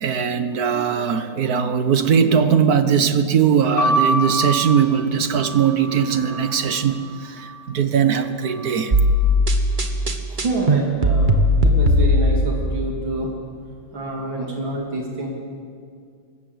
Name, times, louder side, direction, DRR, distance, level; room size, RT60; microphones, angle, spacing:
voice 1, 0.0-8.9, right 7 dB, 55° right, 10 dB, 1.5 m, -20 dB
sound 1, 3.8-7.6 8.4-9.1, right 2 dB, 50° left, 3.7 m, -26 dB
sound 2, 8.9-12.6, left 1 dB, 25° right, 1.5 m, -17 dB
voice 2, 10.3-11.3 11.6-13.3 13.9-15.3, right 2 dB, 90° right, -1 dB, 3.4 m, -27 dB
22.5 x 19.5 x 8.0 m, 2.2 s
omnidirectional pair, 2.1 m